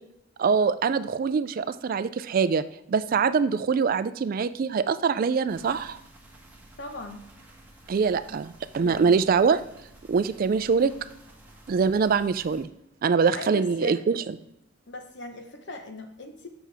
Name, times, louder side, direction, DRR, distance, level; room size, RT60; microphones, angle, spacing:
voice 1, 0.4-6.0 7.9-9.6 10.1-10.9 11.7-12.7 13.0-14.4, right 5 dB, 50° right, 14 dB, 0.3 m, -24 dB
sound 1, 5.5-12.6, right 1 dB, 10° right, 1.1 m, -52 dB
voice 2, 6.8-7.2 8.8-9.1 13.3-14.0 14.9-16.5, left 2 dB, 65° left, 5 dB, 1.1 m, -39 dB
7.3 x 6.2 x 3.4 m, 0.80 s
head